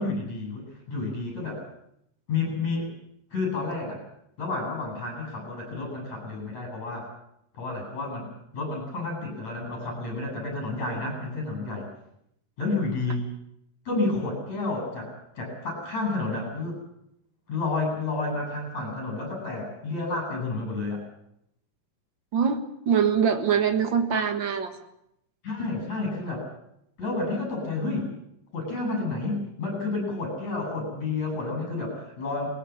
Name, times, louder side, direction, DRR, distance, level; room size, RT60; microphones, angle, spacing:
voice 1, 0.0-1.6 2.3-2.9 3.3-4.0 4.4-7.1 7.6-8.3 8.5-11.9 12.6-13.3 13.9-16.8 17.5-21.0 25.4-26.5 27.0-28.1 28.5-32.5, left 3 dB, 55° left, 3 dB, 9.4 m, -30 dB
voice 2, 22.3-24.7, right 7 dB, 45° right, 7 dB, 1.8 m, -23 dB
20.5 x 18.0 x 8.7 m, 0.77 s
omnidirectional pair, 3.8 m